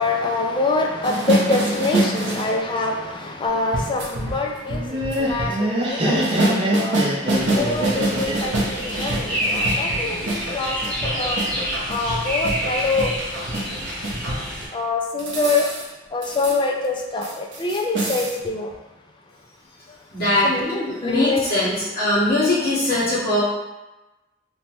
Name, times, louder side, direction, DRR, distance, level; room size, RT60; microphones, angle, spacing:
voice 1, 0.0-7.0 7.5-10.8 11.0-11.4 11.9-13.1 14.7-15.7 16.1-18.7 20.4-21.4, left 3 dB, 25° left, 1 dB, 0.3 m, -25 dB
sound 1, 1.0-2.5 3.7-5.6 6.2-14.5 15.2-15.9 16.2-16.6 16.8-17.0 17.2-18.4, right 1 dB, 80° right, 0.6 m, -26 dB
Laughter, 4.7-9.7, right 1 dB, 30° right, 0.5 m, -24 dB
sound 2, 7.3-14.7, equal, 5° left, 0.7 m, -28 dB
voice 2, 20.1-20.5 20.9-23.4, left 1 dB, 55° left, -11 dB, 1.4 m, -21 dB
3.0 x 2.1 x 3.0 m, 1.1 s
head